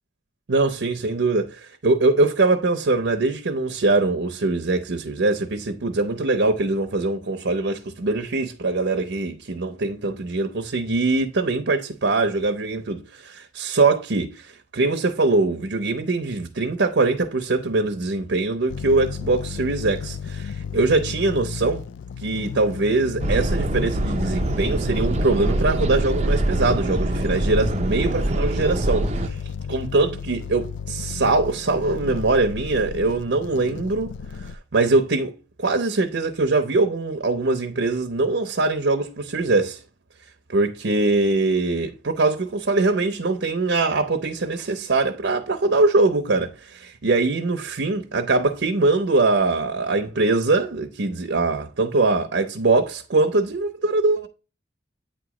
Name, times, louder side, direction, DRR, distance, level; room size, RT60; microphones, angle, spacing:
voice 1, 0.5-21.8 22.2-29.4 29.7-34.1 34.4-35.3 35.6-39.8 40.5-54.3, right 3 dB, 75° right, 0.7 m, -22 dB
sound 1, 18.7-34.6, left 6 dB, 75° left, 0.3 m, -34 dB
sound 2, 23.2-29.3, right 1 dB, 35° right, 0.5 m, -24 dB
8.8 x 3.0 x 4.8 m
head